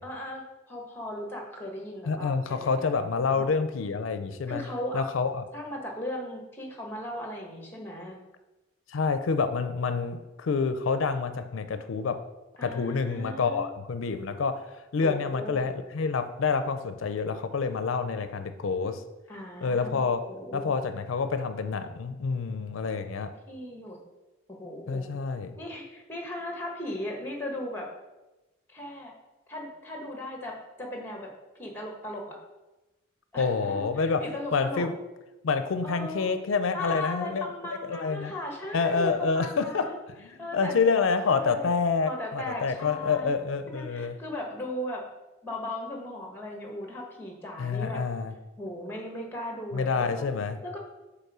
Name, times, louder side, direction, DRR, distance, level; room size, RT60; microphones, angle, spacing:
voice 1, 0.0-3.0 3.3-3.5 4.5-5.0 5.5-8.2 12.6-13.7 15.0-15.6 19.3-20.0 20.3-20.7 23.5-24.0 24.5-25.1 25.6-27.9 28.7-29.1 29.5-31.3 31.6-32.4 33.3-34.9 35.8-36.3 36.7-40.0 40.4-40.7 41.2-41.7 42.0-43.3 43.7-45.0 45.4-48.0 48.6-50.2 50.6-50.8, left 1 dB, 10° left, 1 dB, 1.2 m, -37 dB
voice 2, 2.1-4.6 4.9-5.4 8.9-12.2 12.6-14.7 14.9-19.0 19.6-20.2 20.5-23.3 24.9-25.5 33.4-34.2 34.5-34.9 35.4-37.5 37.9-38.3 38.7-39.9 40.3-44.1 47.6-48.3 49.7-50.6, left 5 dB, 85° left, 10 dB, 0.5 m, -27 dB
5.4 x 4.1 x 6.1 m, 1.1 s
head